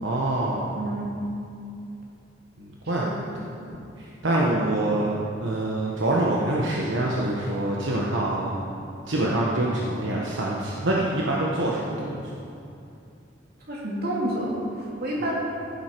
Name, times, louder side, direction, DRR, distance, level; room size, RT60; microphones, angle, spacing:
voice 1, 0.0-0.7 2.6-3.0 4.0-8.7 9.1-12.2, right 1 dB, 75° right, -4 dB, 1.1 m, -25 dB
voice 2, 0.8-1.1 3.0-3.6 13.7-15.3, right 1 dB, 55° right, -4 dB, 2.5 m, -30 dB
15.0 x 7.8 x 4.5 m, 2.6 s
head